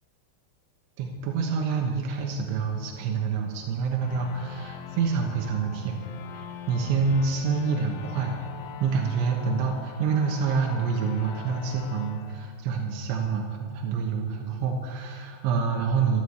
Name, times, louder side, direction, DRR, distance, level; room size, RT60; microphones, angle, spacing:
voice 1, 1.0-6.0 6.3-16.2, right 5 dB, 85° right, 1 dB, 3.6 m, -27 dB
sound 1, 4.0-13.3, left 7 dB, 90° left, 3.1 m, -42 dB
13.0 x 11.5 x 7.9 m, 2.1 s
omnidirectional pair, 5.3 m